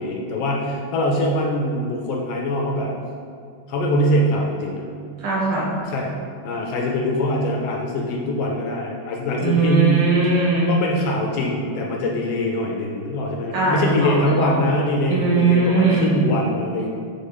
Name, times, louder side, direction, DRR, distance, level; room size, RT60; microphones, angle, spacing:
voice 1, 0.0-2.9 3.7-4.8 5.8-6.1 6.4-10.0 10.7-16.9, left 1 dB, 75° left, -1 dB, 1.4 m, -23 dB
voice 2, 5.2-5.8 9.4-10.7 13.5-14.6 15.1-16.1, right 3 dB, 90° right, -4 dB, 0.9 m, -19 dB
5.2 x 4.3 x 5.5 m, 2.4 s
omnidirectional pair, 3.3 m